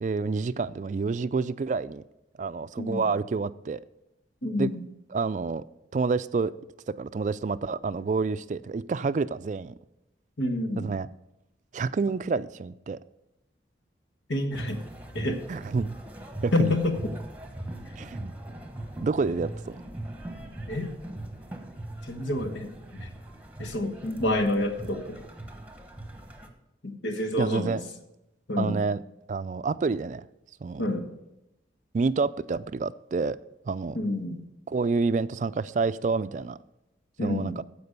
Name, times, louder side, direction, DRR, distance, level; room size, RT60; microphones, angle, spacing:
voice 1, 0.0-2.0 2.4-3.8 4.6-4.7 5.1-5.6 5.9-6.5 7.0-9.7 10.8-11.1 11.7-13.0 15.5-16.0 16.4-16.7 18.0-18.3 19.0-19.8 27.4-27.8 28.6-29.0 29.3-30.2 30.6-30.8 31.9-33.4 33.7-34.0 34.7-36.6 37.2-37.6, right 4 dB, 40° right, 0.3 m, -28 dB
voice 2, 2.8-3.1 4.4-4.8 10.4-10.9 14.3-14.8 15.1-15.4 16.5-16.9 20.7-20.9 22.1-23.1 23.6-25.2 26.8-27.8 28.5-28.8 30.8-31.1 33.9-34.4 37.2-37.6, left 1 dB, 85° left, 1.3 m, -28 dB
sound 1, 14.5-26.5, right 1 dB, 10° right, 1.0 m, -40 dB
14.5 x 5.2 x 5.3 m
head